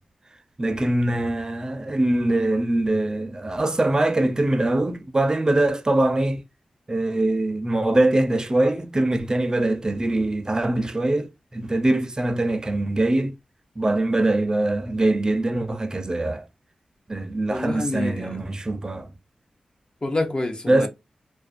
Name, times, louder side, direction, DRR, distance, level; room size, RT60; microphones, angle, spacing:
voice 1, 0.6-6.4 6.9-11.3 11.5-13.3 13.8-16.4 17.1-19.1 20.7-20.9, right 2 dB, 30° right, 0.5 m, -22 dB
voice 2, 17.5-18.5 20.0-20.9, left 2 dB, 40° left, 0.7 m, -28 dB
2.4 x 2.2 x 2.4 m
cardioid pair, 55°, 2 cm